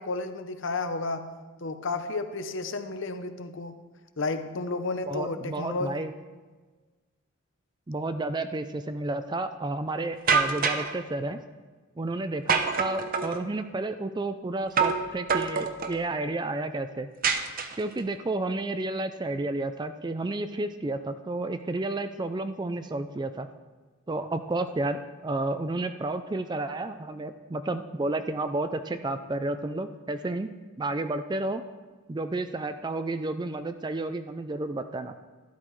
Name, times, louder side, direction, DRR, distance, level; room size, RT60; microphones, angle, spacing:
voice 1, 0.0-1.3 1.6-3.8 4.2-6.0, left 3 dB, 60° left, 9 dB, 0.7 m, -32 dB
voice 2, 5.1-6.1 7.9-11.4 12.0-17.1 17.8-23.5 24.1-30.5 30.8-31.6 32.1-35.1, right 2 dB, 20° right, 10 dB, 0.4 m, -31 dB
sound 1, 10.3-10.9 12.5-13.4 14.8-15.0 15.3-16.0 17.2-18.0, right 5 dB, 40° right, 0.7 m, -25 dB
13.0 x 12.0 x 3.2 m, 1.4 s
head